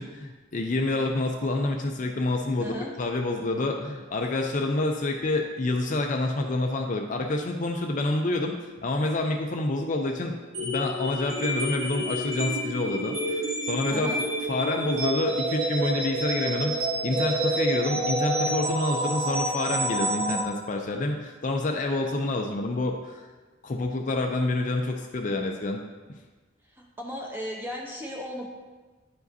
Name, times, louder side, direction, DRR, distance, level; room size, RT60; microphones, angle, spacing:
voice 1, 0.0-14.2 14.5-16.7 17.0-23.2 23.6-25.8, left 2 dB, 35° left, 2 dB, 0.4 m, -28 dB
sound 1, 10.5-20.5, right 1 dB, 70° right, 1.3 m, -28 dB
voice 2, 13.9-14.2 26.8-28.5, equal, 10° right, -1 dB, 0.8 m, -35 dB
10.0 x 4.8 x 2.7 m, 1.3 s
head